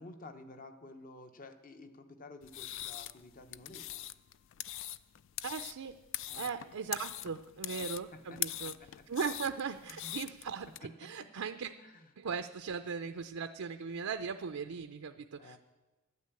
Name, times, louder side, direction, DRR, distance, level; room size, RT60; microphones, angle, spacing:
voice 1, 0.0-4.0 6.3-6.5 7.7-9.1 9.8-10.2 10.8-11.3 11.8-12.1 15.4-15.6, left 2 dB, 40° left, 8 dB, 0.9 m, -52 dB
sound 1, 2.4-10.8, left 13 dB, 60° left, 0.4 m, -42 dB
voice 2, 5.4-6.0 6.4-8.7 9.1-11.7 12.2-15.6, right 6 dB, 80° right, 8 dB, 0.5 m, -38 dB
11.5 x 9.4 x 8.3 m, 1.2 s
head